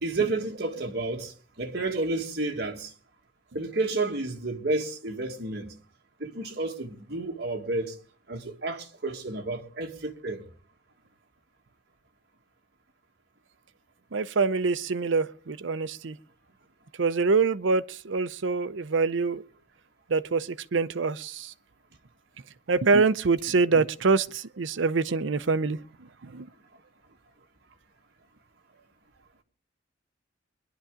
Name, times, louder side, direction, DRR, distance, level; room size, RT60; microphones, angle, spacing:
voice 1, 0.0-2.9 3.5-5.7 6.2-8.0 8.3-10.4, right 2 dB, 55° right, 1.9 m, -31 dB
voice 2, 14.1-16.2 17.0-19.4 20.1-21.5 22.7-25.8 26.2-26.5, right 4 dB, 75° right, 0.6 m, -25 dB
23.0 x 11.5 x 3.8 m
head